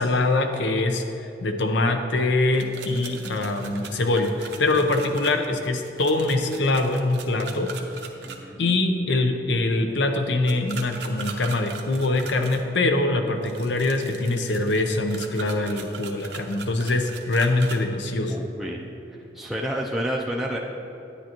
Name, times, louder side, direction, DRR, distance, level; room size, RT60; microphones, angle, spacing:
voice 1, 0.0-7.7 8.6-18.3, left 2 dB, 85° left, 5 dB, 0.7 m, -23 dB
sound 1, 2.5-8.4 10.5-12.6 13.4-17.8, right 5 dB, 70° right, 0.7 m, -40 dB
voice 2, 8.2-8.6 18.3-18.8 19.1-20.6, equal, ahead, -3 dB, 0.4 m, -30 dB
10.0 x 9.5 x 3.0 m, 2.9 s
head